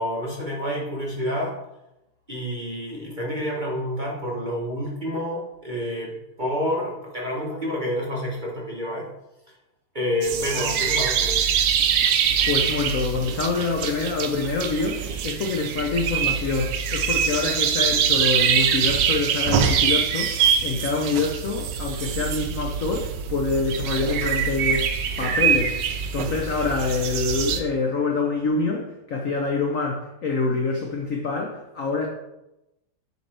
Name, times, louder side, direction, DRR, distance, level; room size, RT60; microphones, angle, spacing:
voice 1, 0.0-1.6 2.3-6.1 6.4-9.0 9.9-11.4, equal, 30° right, 1.0 m, -28 dB
sound 1, 10.2-27.6, right 7 dB, 70° right, 1.2 m, -24 dB
voice 2, 12.4-20.3 20.6-24.9 25.2-32.1, left 4 dB, 70° left, 0.8 m, -26 dB
7.6 x 5.3 x 3.4 m
omnidirectional pair, 2.3 m